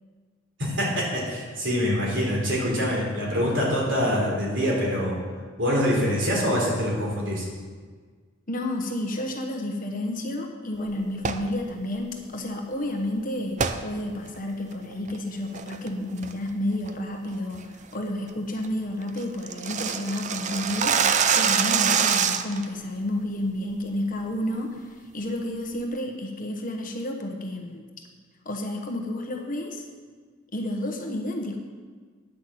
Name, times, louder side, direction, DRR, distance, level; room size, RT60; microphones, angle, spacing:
voice 1, 0.6-5.2 5.6-7.5, equal, 65° right, -3 dB, 3.6 m, -25 dB
voice 2, 8.5-27.8 28.4-29.9 30.5-31.6, left 1 dB, 45° left, 2 dB, 1.2 m, -31 dB
sound 1, 11.2-11.5 13.6-13.8 14.3-14.4 14.9-15.2 15.5-15.9 16.2-16.5 16.8-16.9 17.3-17.6 17.9-18.0 18.4-18.5 18.6-18.7 19.0-22.7, right 7 dB, 35° right, 0.5 m, -24 dB
10.0 x 6.0 x 7.6 m, 1.5 s
head